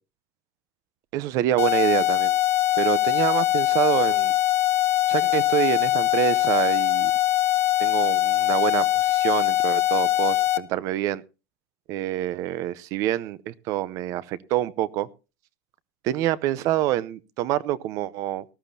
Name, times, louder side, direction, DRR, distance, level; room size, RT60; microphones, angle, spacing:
voice 1, 1.1-2.3 2.8-4.3 5.1-7.1 7.8-11.2 11.9-15.1 16.0-18.4, right 13 dB, 40° right, 20 dB, 0.6 m, -26 dB
sound 1, 1.6-10.6, left 15 dB, 30° left, 0.8 m, -22 dB
19.0 x 13.5 x 2.7 m, 0.30 s
supercardioid pair, 175°, 9 cm